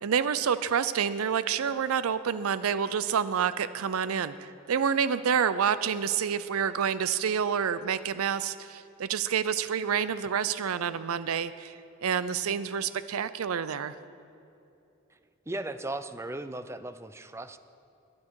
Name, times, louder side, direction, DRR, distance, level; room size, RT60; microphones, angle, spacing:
voice 1, 0.0-13.9, right 7 dB, 85° right, 14 dB, 0.5 m, -28 dB
voice 2, 15.5-17.6, right 2 dB, 15° right, 11 dB, 0.4 m, -37 dB
21.5 x 8.6 x 4.7 m, 2.7 s
head